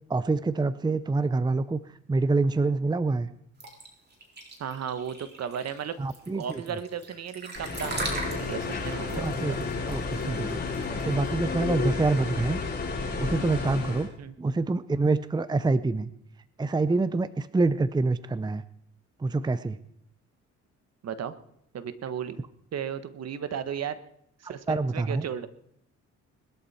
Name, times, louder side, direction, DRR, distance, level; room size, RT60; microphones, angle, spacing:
voice 1, 0.1-1.8 2.1-3.3 6.0-6.6 9.2-10.6 11.0-12.6 13.2-14.1 14.4-16.1 16.6-18.6 19.2-19.8 24.7-25.2, right 3 dB, 15° right, 14 dB, 0.6 m, -26 dB
sound 1, 3.6-11.3, right 2 dB, 35° right, 4.4 m, -38 dB
voice 2, 4.6-6.0 6.3-9.6 14.2-14.3 21.0-21.3 21.7-22.4 22.7-24.0 24.4-25.5, right 8 dB, 55° right, 12 dB, 1.3 m, -35 dB
sound 2, 7.5-14.1, left 4 dB, 35° left, 7.4 m, -31 dB
21.0 x 12.5 x 4.3 m, 0.74 s
cardioid pair, 90°, 30 cm